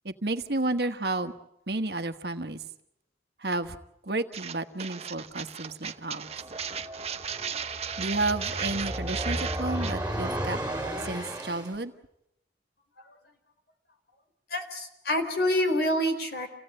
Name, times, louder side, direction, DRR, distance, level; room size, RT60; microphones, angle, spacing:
voice 1, 0.0-1.3 1.7-2.6 3.4-3.8 4.1-6.3 8.0-10.6 11.0-11.9, right 2 dB, 65° right, 8 dB, 1.3 m, -31 dB
sound 1, 4.3-9.9, right 7 dB, 35° right, 0.9 m, -36 dB
sound 2, 6.3-11.8, right 1 dB, 5° right, 3.5 m, -34 dB
voice 2, 14.5-16.5, equal, 60° left, 6 dB, 3.9 m, -27 dB
28.0 x 17.0 x 8.8 m, 0.81 s
head